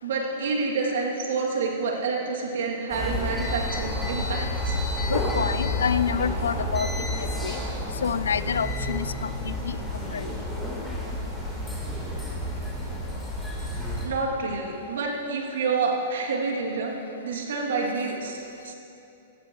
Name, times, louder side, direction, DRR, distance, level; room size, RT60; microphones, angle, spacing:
voice 1, 0.0-4.8 14.0-16.9 17.2-18.8, right 4 dB, 70° right, -1 dB, 2.4 m, -28 dB
sound 1, 2.9-14.1, left 1 dB, 5° left, 3.5 m, -30 dB
voice 2, 5.1-6.9 7.2-7.6 8.0-9.8 10.1-10.3 14.5-14.6, left 6 dB, 75° left, 16 dB, 0.3 m, -28 dB
17.0 x 14.5 x 3.0 m, 2.8 s
hypercardioid pair, 110°, 0 cm